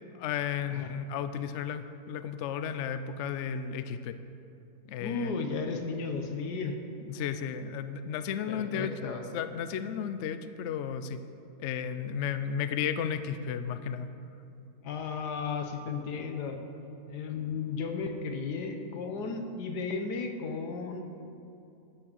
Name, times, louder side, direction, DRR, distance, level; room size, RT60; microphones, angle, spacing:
voice 1, 0.1-4.2 4.9-5.4 7.1-8.9 9.3-11.2 11.6-14.1, left 8 dB, 65° left, 11 dB, 0.7 m, -33 dB
voice 2, 5.0-6.8 8.5-9.2 14.8-16.6 17.1-21.0, left 4 dB, 85° left, 5 dB, 1.5 m, -34 dB
12.5 x 6.1 x 6.7 m, 2.8 s
omnidirectional pair, 1.7 m